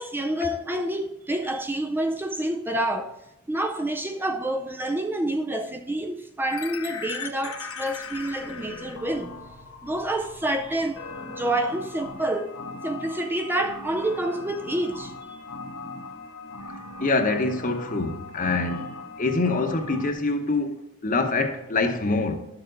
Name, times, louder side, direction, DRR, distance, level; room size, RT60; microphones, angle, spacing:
voice 1, 0.0-3.2 3.5-9.4 9.8-11.0 11.3-12.6 12.8-15.4, right 1 dB, 10° right, 0.4 m, -28 dB
sound 1, 6.5-20.1, left 4 dB, 80° left, 1.1 m, -39 dB
voice 2, 17.0-18.9 19.2-22.4, left 3 dB, 40° left, 0.9 m, -25 dB
11.5 x 6.9 x 3.8 m
head